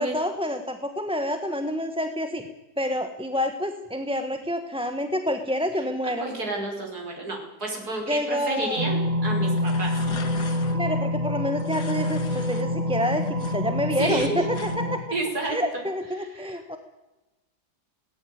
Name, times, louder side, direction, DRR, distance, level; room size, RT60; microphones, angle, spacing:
voice 1, 0.0-2.5 2.8-6.3 8.1-8.8 10.7-15.0 15.5-16.8, equal, 5° right, 6 dB, 1.1 m, -28 dB
voice 2, 6.0-10.0 14.0-14.5 15.1-15.9 16.2-16.6, right 2 dB, 60° right, 0 dB, 5.9 m, -31 dB
sound 1, 8.8-15.0, left 1 dB, 20° right, 3.7 m, -26 dB
sound 2, 9.4-10.8 11.6-12.6 13.0-14.8, left 5 dB, 70° left, 2.5 m, -41 dB
19.0 x 17.0 x 9.6 m, 1.0 s
omnidirectional pair, 1.8 m